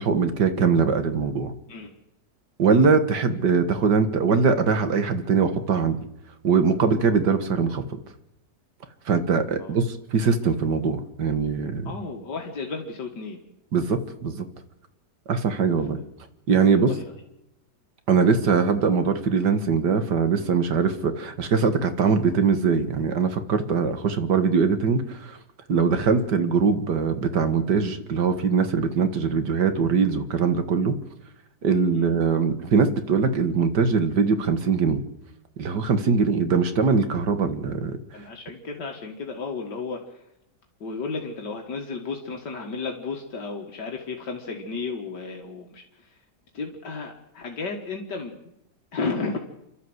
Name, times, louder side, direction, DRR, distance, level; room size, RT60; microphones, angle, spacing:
voice 1, 0.0-1.5 2.6-6.0 6.4-8.0 9.1-11.9 13.7-14.5 15.3-16.0 16.5-16.9 18.1-25.4 25.7-31.0 31.6-35.0 35.6-38.0, right 5 dB, 75° right, 9 dB, 2.2 m, -22 dB
voice 2, 11.8-13.4 16.6-17.1 31.9-32.1 38.1-40.0 40.8-45.8 46.5-48.3 48.9-49.4, left 4 dB, 75° left, 2 dB, 2.4 m, -33 dB
28.5 x 12.5 x 8.0 m, 0.87 s
omnidirectional pair, 1.8 m